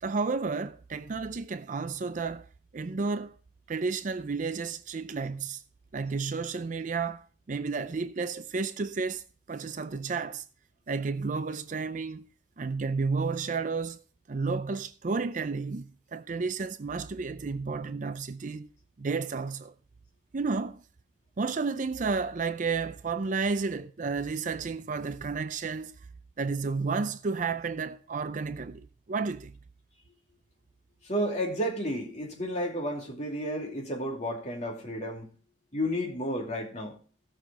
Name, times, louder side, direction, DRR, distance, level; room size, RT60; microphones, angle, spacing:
voice 1, 0.0-2.5 2.7-3.3 3.7-5.6 5.9-10.4 10.9-12.3 12.6-14.0 14.3-18.7 19.0-19.7 20.3-20.8 21.4-26.0 26.4-29.5, right 4 dB, 40° right, 0.4 m, -32 dB
voice 2, 31.0-35.3 35.7-37.0, equal, 35° left, 2.6 m, -32 dB
15.5 x 6.3 x 4.6 m
head